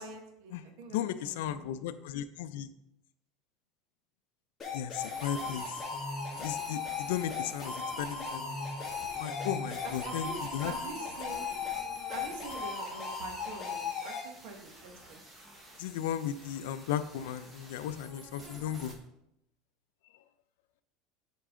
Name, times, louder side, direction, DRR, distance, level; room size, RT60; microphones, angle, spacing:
voice 1, 0.0-1.8 9.8-11.5 12.1-15.2, right 3 dB, 70° right, 4 dB, 1.4 m, -46 dB
voice 2, 0.9-2.7 4.7-5.8 6.4-8.6 9.2-10.3 10.5-10.7 15.8-19.0, left 10 dB, 85° left, 11 dB, 0.4 m, -35 dB
sound 1, 4.6-14.2, left 5 dB, 15° left, 2.3 m, -37 dB
sound 2, 5.0-19.0, right 1 dB, 15° right, 1.3 m, -48 dB
8.2 x 4.6 x 3.7 m, 0.82 s
supercardioid pair, 155°, 0 cm